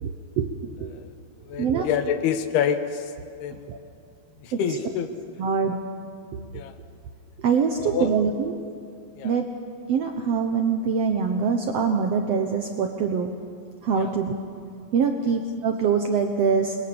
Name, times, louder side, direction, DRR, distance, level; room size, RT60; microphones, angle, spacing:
voice 1, 0.0-0.5 0.8-0.9 1.6-1.9 3.7-3.8 4.5-4.6 5.4-5.8 7.4-8.5 9.2-9.5 9.9-13.3 13.8-14.3 14.9-16.8, right 6 dB, 90° right, 4 dB, 1.4 m, -24 dB
voice 2, 1.5-3.1 3.4-3.7 4.4-5.1 6.5-6.7 7.8-8.1 9.2-9.4 14.0-14.1, left 8 dB, 85° left, 8 dB, 3.2 m, -27 dB
27.5 x 22.0 x 7.1 m, 2.3 s
omnidirectional pair, 4.5 m